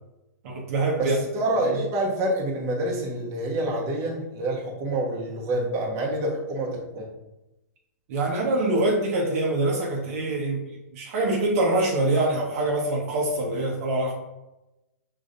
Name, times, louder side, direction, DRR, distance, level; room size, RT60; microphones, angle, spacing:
voice 1, 0.4-1.2 1.6-1.8 8.1-10.6 10.9-14.1, right 2 dB, 55° right, -1 dB, 1.0 m, -24 dB
voice 2, 1.0-7.1, right 1 dB, 30° right, -2 dB, 1.1 m, -27 dB
5.1 x 3.1 x 2.5 m, 0.94 s
hypercardioid pair, 125°, 9 cm